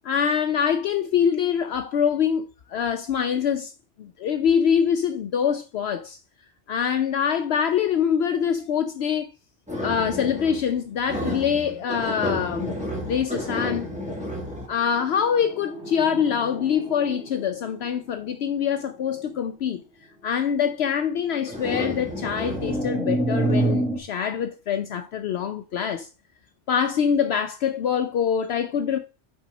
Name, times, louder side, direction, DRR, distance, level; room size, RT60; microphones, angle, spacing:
voice 1, 0.0-3.7 4.0-6.2 6.7-9.3 9.8-12.7 13.0-13.9 14.7-19.8 20.2-26.1 26.7-29.0, left 7 dB, 70° left, 0.8 m, -24 dB
sound 1, 9.7-10.8 11.1-18.0 18.9-19.2 21.5-24.0, right 1 dB, 5° right, 1.5 m, -29 dB
5.5 x 4.6 x 5.2 m
omnidirectional pair, 1.2 m